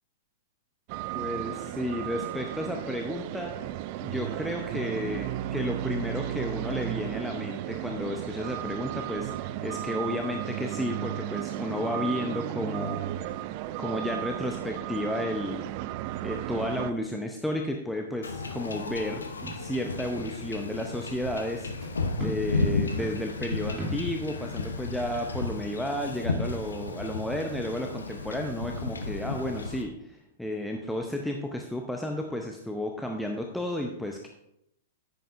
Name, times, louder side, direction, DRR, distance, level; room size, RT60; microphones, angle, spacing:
sound 1, 0.9-16.9, right 13 dB, 40° right, 0.4 m, -34 dB
voice 1, 1.1-3.5 4.0-13.3 13.8-15.7 16.2-19.2 19.6-21.7 22.2-34.3, left 1 dB, ahead, 2 dB, 0.7 m, -32 dB
Wind / Ocean / Boat Water vehicle, 18.2-29.8, left 3 dB, 70° left, 0.9 m, -33 dB
sound 2, 18.7-19.2 19.4-19.7 19.9-20.4 20.7-21.2 21.8-22.0 22.2-22.4 22.8-24.1, right 1 dB, 20° right, 3.0 m, -38 dB
10.0 x 9.0 x 2.6 m, 0.80 s
figure-of-eight pair, 100°, 0 cm